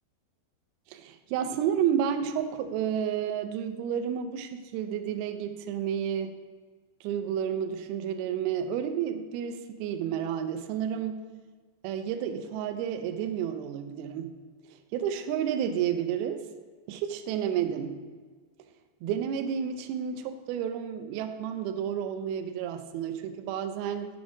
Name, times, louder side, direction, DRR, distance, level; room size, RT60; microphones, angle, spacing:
voice 1, 0.9-6.3 7.0-11.3 11.8-14.3 14.9-16.4 16.9-18.0 19.0-24.1, right 8 dB, 90° right, 7 dB, 2.2 m, -31 dB
8.0 x 5.2 x 4.8 m, 1.5 s
omnidirectional pair, 5.0 m